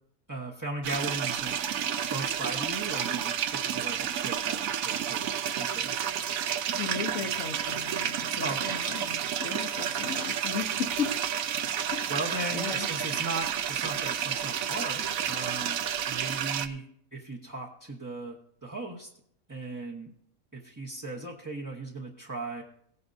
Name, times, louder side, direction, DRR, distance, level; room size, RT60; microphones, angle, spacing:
voice 1, 0.3-1.5 2.0-5.3 5.6-5.9 8.4-8.8 12.1-15.8 16.0-18.4 18.6-19.1 19.5-20.1 20.5-22.6, right 2 dB, 15° right, -4 dB, 0.8 m, -37 dB
sound 1, 0.8-16.7, right 9 dB, 75° right, 1.0 m, -31 dB
voice 2, 6.8-11.2 11.9-12.2 12.5-12.9, left 7 dB, 65° left, 2 dB, 1.2 m, -36 dB
17.5 x 9.5 x 2.6 m, 0.68 s
omnidirectional pair, 1.5 m